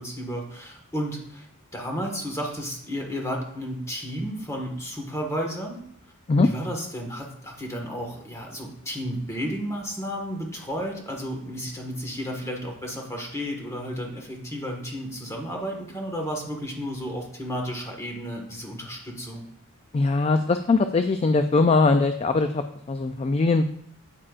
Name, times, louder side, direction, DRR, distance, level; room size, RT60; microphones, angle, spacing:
voice 1, 0.0-1.5 1.7-5.8 6.4-19.5, equal, 15° left, 1 dB, 1.6 m, -32 dB
voice 2, 19.9-23.6, left 3 dB, 30° left, 8 dB, 0.3 m, -21 dB
8.7 x 8.6 x 2.5 m, 0.67 s
head